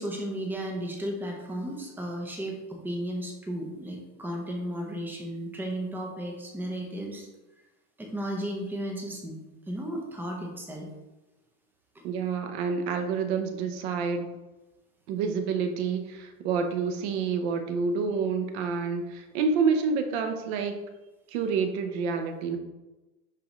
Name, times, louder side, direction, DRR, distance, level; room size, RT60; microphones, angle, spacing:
voice 1, 0.0-7.3 8.0-9.4 9.7-10.9 11.9-12.0, right 1 dB, 5° right, 0 dB, 0.5 m, -34 dB
voice 2, 12.0-14.3 15.1-20.8 21.3-22.6, right 5 dB, 45° right, 6 dB, 0.8 m, -28 dB
10.5 x 3.7 x 3.1 m, 1.1 s
supercardioid pair, 165°, 43 cm